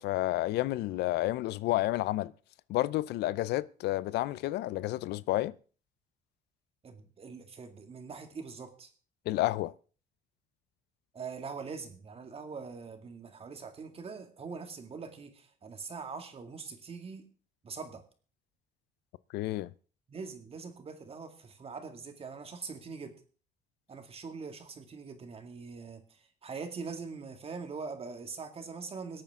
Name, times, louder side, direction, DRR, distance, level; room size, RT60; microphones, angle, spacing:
voice 1, 0.0-2.3 2.7-5.5 9.3-9.7 19.3-19.7, left 16 dB, 75° left, 0.5 m, -30 dB
voice 2, 6.8-8.9 11.1-17.2 17.6-18.0 20.1-23.2 23.9-26.0 26.4-29.2, right 5 dB, 35° right, 2.3 m, -43 dB
22.5 x 8.7 x 3.7 m
cardioid pair, 110°, 17 cm